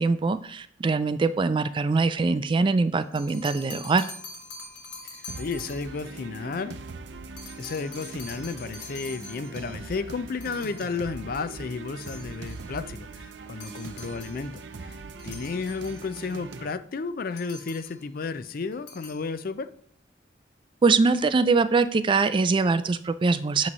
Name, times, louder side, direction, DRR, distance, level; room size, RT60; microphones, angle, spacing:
voice 1, 0.0-4.1 20.8-23.7, right 4 dB, 30° right, 0.3 m, -23 dB
sound 1, 3.0-6.1 7.4-9.8 10.4-11.1 12.0-12.7 13.6-14.4 15.2-16.4 17.4-18.1 18.7-19.3, left 3 dB, 80° left, 1.5 m, -45 dB
sound 2, 5.3-16.7, right 4 dB, 85° right, 0.5 m, -41 dB
voice 2, 5.4-6.7 7.6-15.0 15.2-19.7, left 4 dB, 55° left, 0.4 m, -33 dB
8.5 x 3.1 x 5.4 m
head